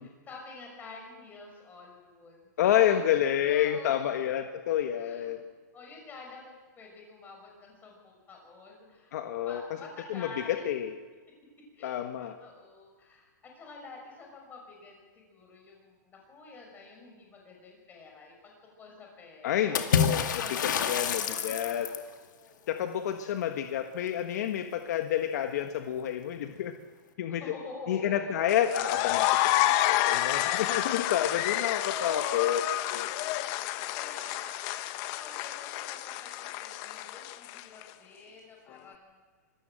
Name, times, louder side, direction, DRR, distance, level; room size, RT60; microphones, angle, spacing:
voice 1, 0.0-4.2 4.9-5.5 5.7-9.2 9.4-10.7 11.7-22.0 22.3-22.8 27.3-28.8 30.2-30.9 31.5-32.7 33.1-33.6 33.9-34.6 35.2-39.2, left 3 dB, 15° left, 1 dB, 6.0 m, -47 dB
voice 2, 2.6-5.4 9.1-9.8 10.1-11.0 11.8-12.4 19.4-20.2 20.9-21.9 22.7-26.7 27.2-27.4 27.9-32.6 32.9-33.1, left 10 dB, 60° left, 6 dB, 1.4 m, -29 dB
Water / Splash splatter, 19.7-22.1, left 7 dB, 80° left, 2.3 m, -28 dB
sound 1, 28.5-37.8, left 15 dB, 35° left, 0.9 m, -29 dB
25.0 x 14.5 x 7.7 m, 1.4 s
hypercardioid pair, 155°, 10 cm